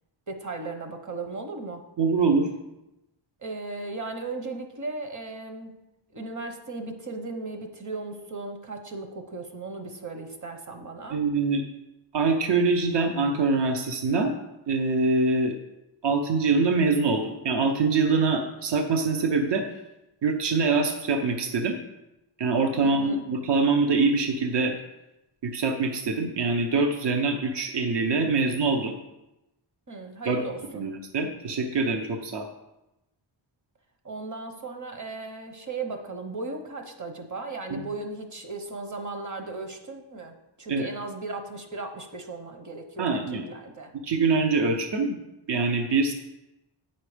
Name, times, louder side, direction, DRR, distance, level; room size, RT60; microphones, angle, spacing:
voice 1, 0.3-1.8 3.4-5.7 6.1-11.2 22.8-23.2 29.9-30.8 34.0-43.9, right 3 dB, 40° right, 5 dB, 1.2 m, -36 dB
voice 2, 2.0-2.5 11.1-11.6 12.1-14.3 14.7-15.5 16.0-19.7 20.2-21.8 22.4-24.8 25.4-29.0 30.2-30.4 30.7-32.5 37.7-37.8 40.7-40.9 43.0-43.4 44.0-45.2 45.5-46.1, right 4 dB, 60° right, 4 dB, 0.9 m, -24 dB
9.1 x 5.8 x 5.0 m, 0.93 s
wide cardioid pair, 130°, 48 cm